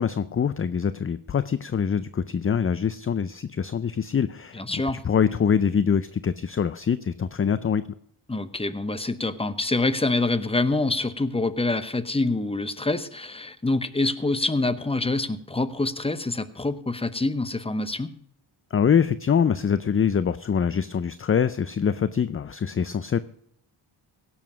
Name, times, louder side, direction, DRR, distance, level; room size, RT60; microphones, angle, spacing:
voice 1, 0.0-7.9 18.7-23.2, left 7 dB, 30° left, 15 dB, 0.4 m, -24 dB
voice 2, 4.5-5.0 8.3-18.1, left 2 dB, 10° left, 13 dB, 0.8 m, -26 dB
17.0 x 7.1 x 6.1 m, 0.69 s
cardioid pair, 80°, 50 cm